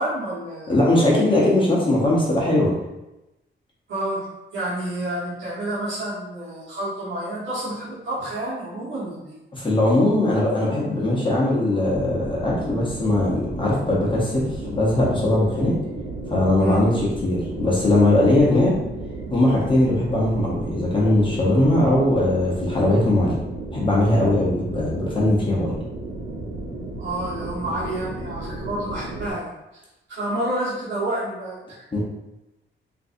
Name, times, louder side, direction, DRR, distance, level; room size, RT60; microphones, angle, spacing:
voice 1, 0.0-1.3 3.9-4.3 4.5-9.3 16.6-16.9 27.0-29.5 30.1-31.8, right 1 dB, 65° right, -9 dB, 1.1 m, -29 dB
voice 2, 0.7-2.7 9.5-15.7 16.3-18.8 19.3-23.4 23.7-25.7 31.9-32.0, left 1 dB, 25° left, -5 dB, 0.8 m, -20 dB
sound 1, 11.8-29.3, right 2 dB, 85° right, 0.7 m, -34 dB
3.7 x 2.6 x 2.6 m, 0.97 s
wide cardioid pair, 135°, 20 cm